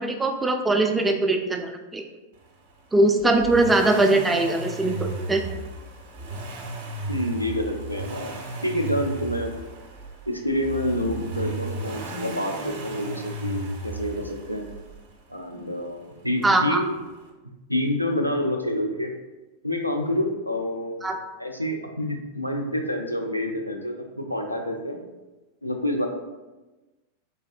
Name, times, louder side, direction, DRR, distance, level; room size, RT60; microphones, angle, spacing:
voice 1, 0.0-2.0 2.9-5.4 16.4-16.8 21.0-21.1, right 2 dB, 10° right, 4 dB, 0.3 m, -21 dB
Accelerating revving vroom, 3.2-15.1 16.4-16.5, right 2 dB, 55° right, 0.6 m, -35 dB
voice 2, 7.1-8.4 8.6-9.6 10.3-14.7 15.3-17.0 17.7-19.2 19.6-21.1 21.4-25.0 25.6-26.1, left 1 dB, 90° left, 2 dB, 0.3 m, -28 dB
3.3 x 2.6 x 2.4 m, 1.1 s
figure-of-eight pair, 90°, 0 cm